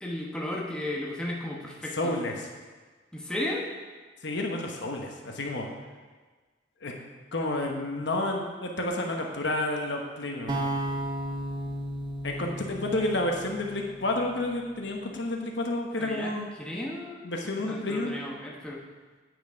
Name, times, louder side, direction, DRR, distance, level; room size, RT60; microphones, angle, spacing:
voice 1, 0.0-2.1 3.1-3.7 15.9-17.3 17.7-18.8, left 1 dB, 5° left, -3 dB, 1.0 m, -34 dB
voice 2, 1.9-2.5 4.2-5.7 6.8-6.9 7.3-10.7 12.2-16.5 17.2-18.1, left 2 dB, 65° left, 1 dB, 1.1 m, -30 dB
sound 1, 10.5-14.6, right 1 dB, 25° right, 0.8 m, -34 dB
9.0 x 6.1 x 5.1 m, 1.4 s
head